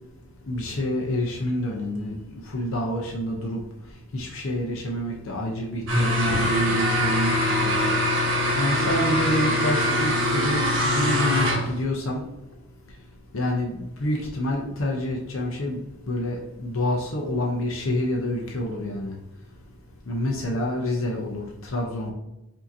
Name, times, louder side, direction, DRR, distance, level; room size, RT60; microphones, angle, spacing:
voice 1, 0.5-12.3 12.9-13.0 13.3-19.2 20.1-22.1, left 1 dB, 65° left, 0 dB, 0.7 m, -28 dB
sound 1, 5.9-11.8, left 1 dB, 60° right, 1.2 m, -23 dB
4.9 x 2.8 x 2.6 m, 0.90 s
head